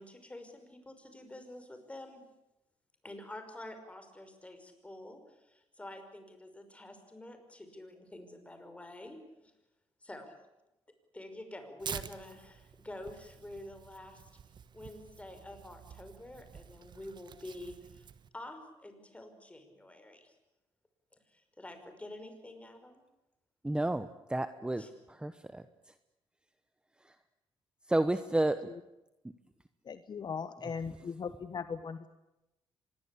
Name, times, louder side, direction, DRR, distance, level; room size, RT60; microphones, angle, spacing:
voice 1, 0.0-2.2 3.0-9.2 9.4-9.5 10.0-10.3 11.1-14.2 14.7-18.1 18.3-20.3 21.3-23.0 24.8-24.9, left 1 dB, 10° left, 7 dB, 5.5 m, -48 dB
Tearing, 11.8-18.3, right 7 dB, 50° right, 1.4 m, -48 dB
voice 2, 23.6-25.6 27.0-27.1 27.9-28.7, right 1 dB, 10° right, 11 dB, 1.1 m, -31 dB
voice 3, 29.8-32.1, left 6 dB, 45° left, 12 dB, 1.2 m, -39 dB
25.5 x 21.5 x 8.5 m, 0.94 s
cardioid pair, 110°, 10 cm